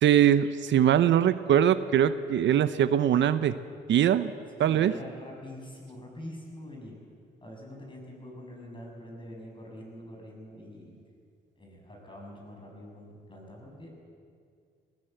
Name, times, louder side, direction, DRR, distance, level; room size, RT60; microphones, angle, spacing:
voice 1, 0.0-3.6 3.9-4.3 4.6-4.9, right 10 dB, 70° right, 13 dB, 0.8 m, -22 dB
voice 2, 4.6-7.0 7.4-11.0 11.6-13.9, left 1 dB, 25° left, 0 dB, 6.8 m, -45 dB
19.0 x 18.5 x 7.9 m, 2.2 s
cardioid pair, 90°, 20 cm